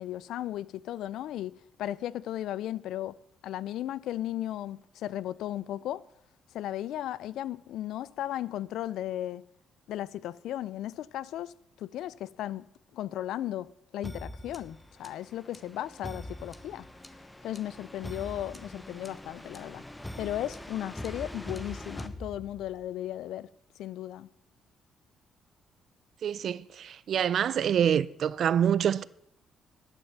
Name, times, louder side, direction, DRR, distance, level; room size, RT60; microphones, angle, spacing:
voice 1, 0.0-3.2 3.4-6.0 6.5-9.4 9.9-11.5 11.8-12.7 12.9-16.9 17.4-19.8 20.2-23.5 23.8-24.3, left 12 dB, 80° left, 0.5 m, -35 dB
sound 1, 14.0-22.9, left 1 dB, 10° left, 1.0 m, -43 dB
voice 2, 26.2-29.0, right 9 dB, 60° right, 0.5 m, -26 dB
12.5 x 9.8 x 5.9 m
cardioid pair, 90°, 0 cm